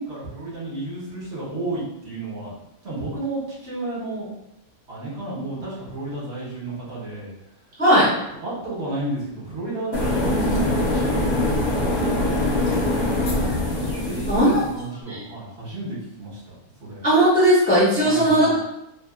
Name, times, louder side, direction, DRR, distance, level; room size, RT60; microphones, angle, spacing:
voice 1, 0.0-2.5 2.8-4.3 4.9-7.3 8.4-16.5 16.8-17.0 18.0-18.6, right 2 dB, 55° right, -6 dB, 1.1 m, -32 dB
sound 1, 9.9-14.7, left 1 dB, 60° left, 0.8 m, -23 dB
voice 2, 14.3-14.6 15.1-15.2 17.0-18.5, equal, 10° left, -8 dB, 0.5 m, -17 dB
2.7 x 2.3 x 2.3 m, 0.83 s
omnidirectional pair, 1.5 m